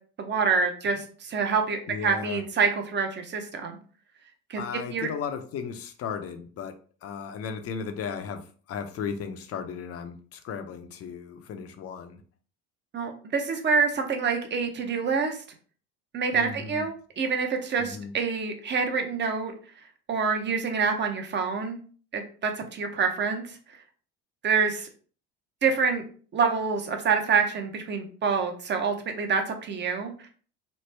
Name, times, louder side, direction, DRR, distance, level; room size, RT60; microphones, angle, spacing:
voice 1, 0.2-3.8 4.5-4.6 4.9-5.1 12.9-15.4 16.1-19.5 20.1-21.8 22.1-23.6 24.4-24.9 25.6-26.0 26.3-30.3, right 5 dB, 35° right, 5 dB, 0.8 m, -26 dB
voice 2, 1.9-2.4 4.6-12.2 16.3-16.8 17.8-18.1, left 6 dB, 45° left, 7 dB, 0.6 m, -35 dB
3.2 x 2.0 x 3.2 m, 0.41 s
supercardioid pair, 85°, 32 cm